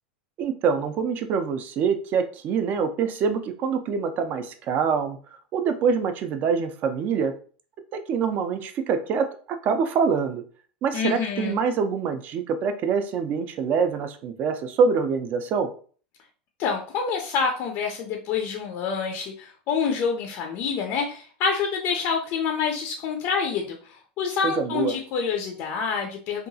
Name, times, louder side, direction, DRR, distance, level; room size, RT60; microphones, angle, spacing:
voice 1, 0.4-5.2 5.5-7.3 7.9-10.4 10.8-15.7 24.4-25.0, right 6 dB, 35° right, 8 dB, 0.4 m, -25 dB
voice 2, 10.9-11.6 16.6-26.5, left 6 dB, 45° left, 3 dB, 0.4 m, -27 dB
2.8 x 2.3 x 2.6 m, 0.42 s
supercardioid pair, 150°, 5 cm